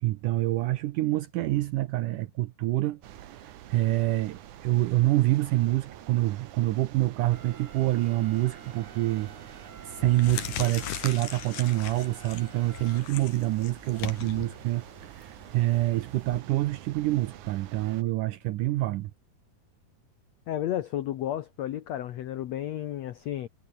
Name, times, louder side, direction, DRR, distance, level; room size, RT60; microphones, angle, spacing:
voice 1, 0.0-3.0 3.4-19.1, right 17 dB, 80° right, 1.9 m, -27 dB
sound 1, 3.0-18.0, right 12 dB, 65° right, 2.3 m, -47 dB
sound 2, 7.3-13.5, right 5 dB, 40° right, 1.1 m, -50 dB
sound 3, 9.1-9.4 9.9-16.4, left 10 dB, 60° left, 3.2 m, -39 dB
voice 2, 20.5-23.5, left 12 dB, 80° left, 1.5 m, -32 dB
omnidirectional pair, 4.4 m